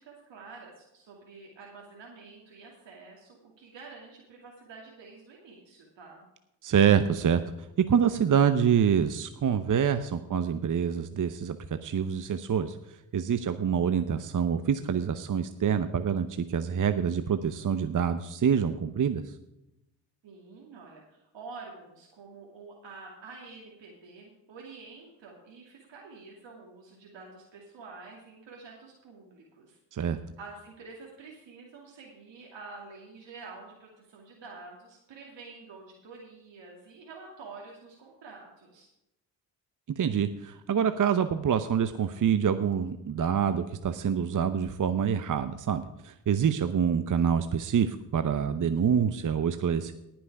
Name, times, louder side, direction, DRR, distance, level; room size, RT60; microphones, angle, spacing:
voice 1, 0.0-6.3 20.2-30.1 30.4-38.9, right 4 dB, 65° right, -2 dB, 2.6 m, -48 dB
voice 2, 6.6-7.4 7.8-12.8 13.1-19.3 29.9-30.2 40.0-49.9, right 7 dB, 40° right, 10 dB, 0.9 m, -26 dB
18.5 x 6.2 x 4.8 m, 0.91 s
supercardioid pair, 55°, 46 cm